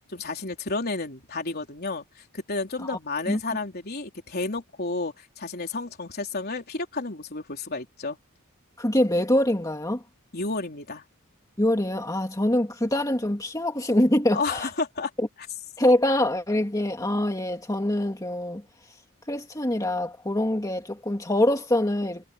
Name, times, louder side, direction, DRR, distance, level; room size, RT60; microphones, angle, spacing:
voice 1, 0.1-8.2 10.3-11.0 14.3-15.1, left 3 dB, 50° left, 3.8 m, -31 dB
voice 2, 8.8-10.0 11.6-14.7 15.8-18.6 19.3-22.2, left 1 dB, 15° left, 2.3 m, -24 dB
head